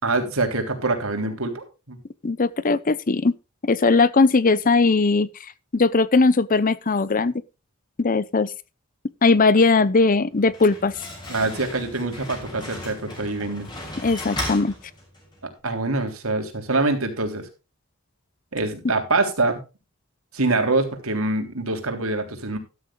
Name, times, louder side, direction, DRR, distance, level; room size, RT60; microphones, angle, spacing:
voice 1, 0.0-2.0 11.3-13.7 15.4-17.5 18.5-19.6 20.3-22.6, right 3 dB, 80° right, 3.4 m, -25 dB
voice 2, 2.2-3.3 3.6-5.3 5.7-7.3 8.0-8.5 9.2-10.9 14.0-14.7, left 3 dB, 40° left, 0.7 m, -19 dB
Slam, 10.3-15.4, left 1 dB, 20° left, 6.3 m, -36 dB
13.5 x 13.0 x 2.4 m
head